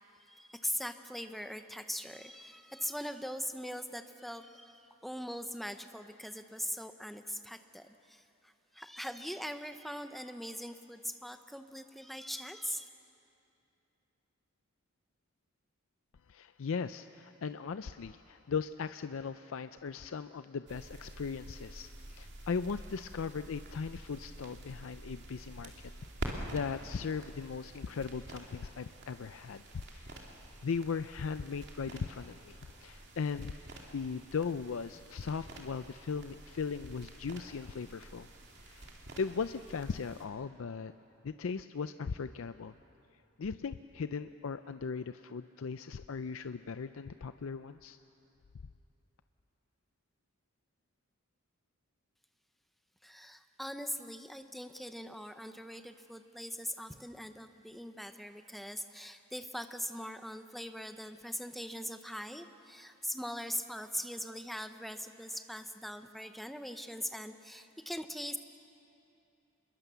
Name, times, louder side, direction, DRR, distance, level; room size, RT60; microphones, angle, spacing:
voice 1, 0.2-12.9 53.0-68.4, equal, ahead, 8 dB, 0.7 m, -41 dB
voice 2, 16.3-25.9 26.2-29.6 29.9-30.2 30.6-33.5 33.9-38.3 38.6-38.9 39.2-40.9 41.2-42.7 43.4-48.0, left 5 dB, 70° left, 11 dB, 0.5 m, -38 dB
sound 1, 20.7-40.2, right 1 dB, 55° right, 2.8 m, -48 dB
27.0 x 22.0 x 6.9 m, 2.8 s
head